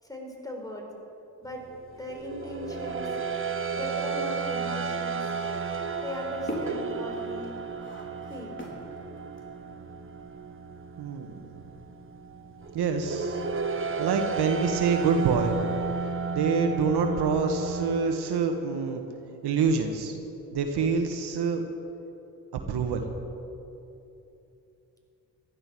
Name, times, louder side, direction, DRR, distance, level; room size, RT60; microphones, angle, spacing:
voice 1, 0.0-0.9 1.4-1.7 1.9-3.1 3.7-5.3 6.0-7.6 8.3-8.6, left 1 dB, 10° left, 1 dB, 4.2 m, -38 dB
sound 1, 1.6-18.0, right 5 dB, 30° right, 1.2 m, -33 dB
sound 2, 3.5-9.7, equal, 30° left, 4.0 m, -41 dB
voice 2, 11.0-11.3 12.7-13.4 14.0-15.7 16.3-19.0 19.4-20.2 20.5-21.6 22.7-23.0, right 5 dB, 80° right, 5 dB, 1.4 m, -26 dB
15.5 x 12.0 x 6.1 m, 2.9 s
supercardioid pair, 50°, 39 cm